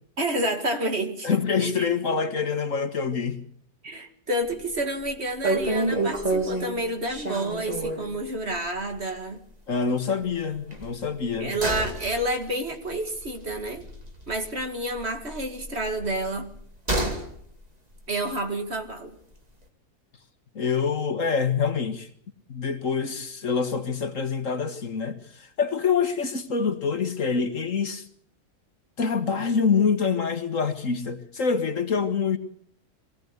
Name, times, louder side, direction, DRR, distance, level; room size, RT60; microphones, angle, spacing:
voice 1, 0.2-1.9 3.8-9.4 11.4-13.9 14.3-16.5 18.1-19.2, right 1 dB, 40° right, 2.3 m, -29 dB
voice 2, 1.2-3.4 9.7-11.5 20.6-22.1 22.5-28.1 29.0-32.4, left 5 dB, 55° left, 1.9 m, -26 dB
sound 1, 4.5-4.8 5.1-5.2 5.4-8.1 8.5-8.7 9.0-9.1 10.7-14.6 14.9-17.3 17.6-17.7, right 2 dB, 25° right, 2.7 m, -29 dB
23.0 x 17.0 x 8.1 m
omnidirectional pair, 1.7 m